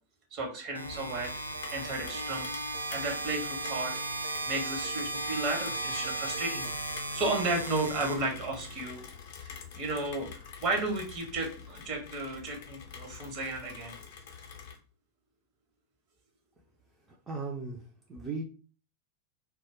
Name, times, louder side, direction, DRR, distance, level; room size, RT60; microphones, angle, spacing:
voice 1, 0.3-1.3 1.7-2.5 2.9-3.9 4.5-9.0 9.4-10.3 10.6-13.9, right 2 dB, 40° right, 0.9 m, -33 dB
sound 1, 0.7-8.8, right 2 dB, 80° right, 0.3 m, -36 dB
Rain, 0.8-14.8, left 6 dB, 50° left, 0.5 m, -47 dB
voice 2, 17.3-17.8 18.1-18.4, right 4 dB, 15° right, 0.5 m, -36 dB
2.2 x 2.0 x 3.4 m
figure-of-eight pair, 90°, 0 cm